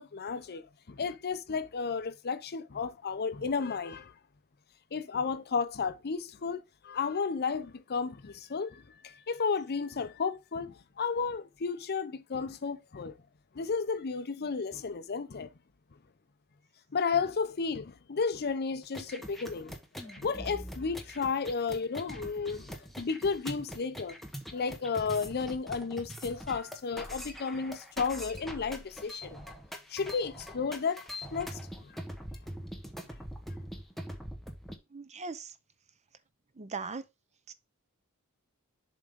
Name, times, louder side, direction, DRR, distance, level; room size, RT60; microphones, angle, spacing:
voice 1, 0.0-4.1 4.9-13.2 13.5-15.5 16.9-19.8 20.0-24.2 24.5-29.5 29.9-32.0, left 5 dB, 45° left, 0.6 m, -33 dB
sound 1, 18.8-34.7, equal, ahead, 1.1 m, -43 dB
voice 2, 34.9-35.5 36.6-37.1 37.5-37.6, right 4 dB, 30° right, 0.6 m, -39 dB
7.2 x 3.6 x 5.2 m
head